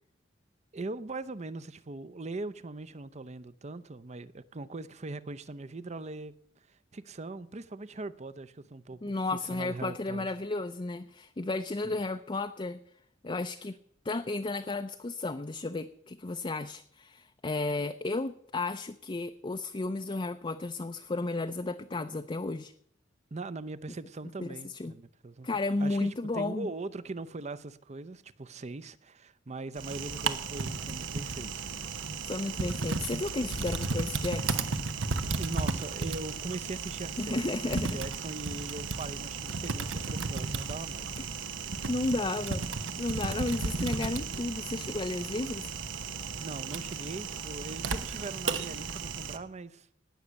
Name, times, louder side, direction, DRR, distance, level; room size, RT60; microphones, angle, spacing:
voice 1, 0.7-6.3 6.7-9.2 9.5-10.3 11.8-12.0 23.3-31.7 35.3-41.1 46.4-49.9, right 2 dB, 35° right, 0.7 m, -41 dB
voice 2, 9.0-12.8 13.2-13.8 14.0-22.7 24.4-24.5 24.7-24.9 25.4-26.7 32.2-34.7 37.2-38.0 41.2-41.3 41.9-45.7, left 2 dB, 25° left, 0.5 m, -33 dB
Typing, 29.8-49.4, right 4 dB, 85° right, 1.1 m, -34 dB
18.5 x 6.4 x 8.1 m
head